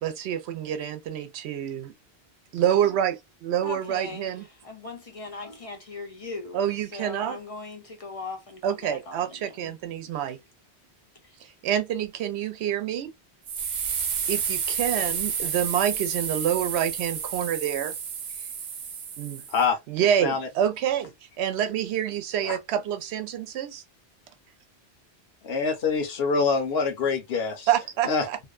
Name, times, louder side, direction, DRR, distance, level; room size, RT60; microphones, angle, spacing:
voice 1, 0.0-1.9 2.5-4.4 6.5-7.4 8.6-10.4 11.4-13.1 14.3-17.9 19.2-19.4 19.9-23.8 27.7-28.4, right 10 dB, 80° right, 0.8 m, -27 dB
voice 2, 3.6-9.8 10.0-10.4 11.2-11.4, left 3 dB, 40° left, 0.6 m, -39 dB
sound 1, 13.5-19.6, right 7 dB, 55° right, 0.5 m, -30 dB
voice 3, 25.4-27.7 28.0-28.2, left 5 dB, 70° left, 1.0 m, -25 dB
2.6 x 2.1 x 2.3 m
omnidirectional pair, 1.1 m